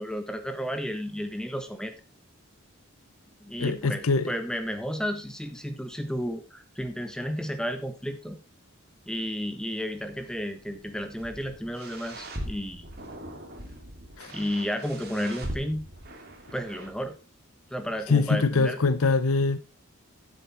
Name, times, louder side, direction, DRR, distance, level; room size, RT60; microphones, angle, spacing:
voice 1, 0.0-1.9 3.4-8.4 9.1-12.8 14.3-15.8 16.5-17.1 17.7-18.8, equal, 5° left, 1.3 m, -32 dB
voice 2, 3.6-4.3 14.2-14.3 18.1-19.6, left 4 dB, 90° left, 0.7 m, -23 dB
sound 1, 10.6-16.9, right 1 dB, 50° right, 2.5 m, -41 dB
10.0 x 7.9 x 4.3 m
head